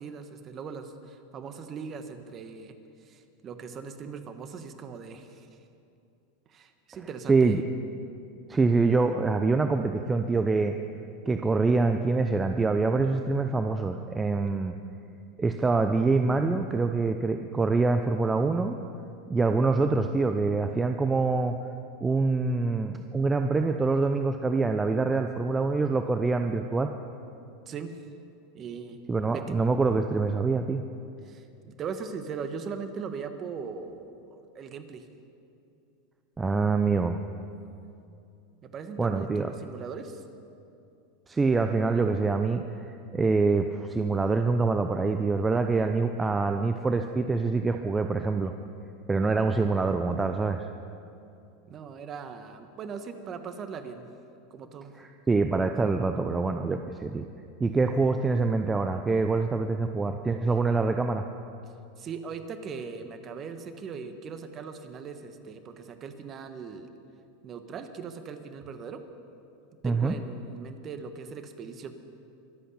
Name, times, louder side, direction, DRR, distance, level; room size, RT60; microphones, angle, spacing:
voice 1, 0.0-2.7 3.0-5.5 6.5-7.6 27.7-28.0 28.5-29.6 31.2-35.0 38.6-40.2 51.7-54.1 54.5-54.9 62.0-66.9 67.4-69.0 69.8-71.9, right 5 dB, 35° right, 8 dB, 1.3 m, -39 dB
voice 2, 7.3-7.6 8.5-10.8 11.2-14.8 15.4-18.8 19.3-21.6 22.0-26.9 29.1-30.8 36.4-37.2 39.0-39.5 41.3-48.5 49.1-50.6 55.0-57.3 57.6-61.3 69.8-70.1, right 3 dB, 15° right, 6 dB, 0.6 m, -25 dB
23.5 x 8.5 x 5.7 m, 2.7 s
hypercardioid pair, 105°, 0 cm